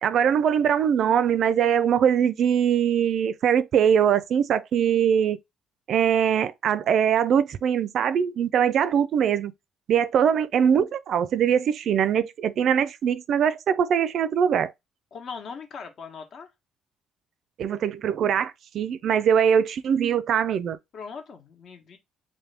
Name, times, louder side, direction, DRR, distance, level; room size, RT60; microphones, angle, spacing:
voice 1, 0.0-5.4 5.9-9.5 9.9-14.7 17.6-20.8, right 8 dB, 60° right, 0.4 m, -22 dB
voice 2, 15.1-16.5 20.9-22.0, left 5 dB, 55° left, 1.1 m, -39 dB
3.5 x 2.6 x 3.3 m
cardioid pair, 100°, 0 cm